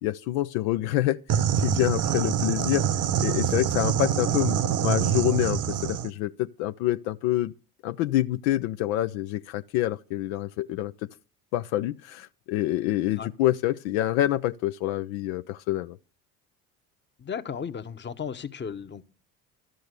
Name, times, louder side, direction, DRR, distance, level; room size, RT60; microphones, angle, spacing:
voice 1, 0.0-1.2 1.6-2.9 3.2-7.5 7.8-10.9 11.5-16.0, left 14 dB, 70° left, 0.6 m, -27 dB
sound 1, 1.3-6.1, right 9 dB, 45° right, 0.9 m, -25 dB
voice 2, 17.2-19.0, left 7 dB, 25° left, 1.0 m, -35 dB
12.5 x 7.8 x 6.6 m
hypercardioid pair, 60°, 43 cm